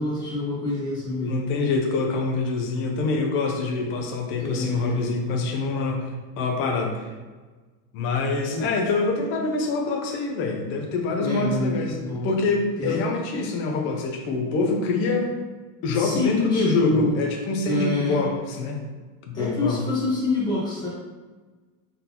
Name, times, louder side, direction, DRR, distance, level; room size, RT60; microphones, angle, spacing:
voice 1, 0.0-1.4 4.4-5.1 8.5-8.7 11.2-12.3 12.8-13.0 15.9-17.2 17.6-18.3 19.3-20.9, left 2 dB, 10° left, -7 dB, 1.0 m, -26 dB
voice 2, 1.3-6.1 6.4-7.0 7.9-12.0 12.2-15.3 15.8-18.8 19.3-19.8, left 3 dB, 30° left, 1 dB, 0.5 m, -25 dB
3.9 x 3.6 x 2.8 m, 1.3 s
cardioid pair, 175°, 39 cm